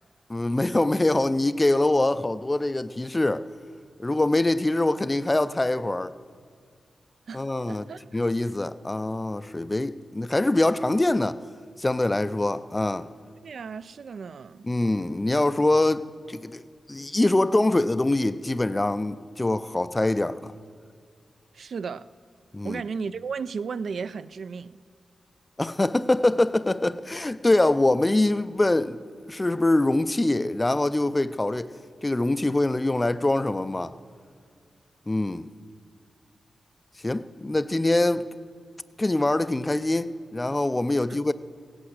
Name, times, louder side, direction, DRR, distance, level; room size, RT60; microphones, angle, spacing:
voice 1, 0.3-3.5 4.0-6.1 7.3-7.8 8.1-11.4 11.8-13.1 14.6-16.6 16.9-20.5 22.5-22.8 25.6-29.0 29.3-31.7 32.0-33.9 35.1-35.5 37.0-38.3 39.0-41.3, left 2 dB, 15° left, 0.4 m, -24 dB
voice 2, 7.3-8.2 13.4-14.7 21.5-22.1 22.6-24.8 41.1-41.3, right 5 dB, 65° right, 0.3 m, -35 dB
16.5 x 8.6 x 8.0 m
wide cardioid pair, 145°, 0 cm